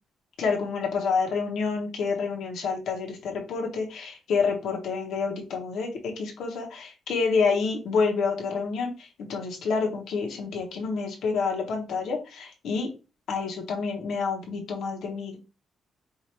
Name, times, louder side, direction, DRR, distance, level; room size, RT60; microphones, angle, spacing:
voice 1, 0.4-12.9 13.3-15.4, left 5 dB, 75° left, 1 dB, 1.1 m, -28 dB
4.7 x 2.6 x 2.9 m, 0.30 s
cardioid pair, 150°, 0 cm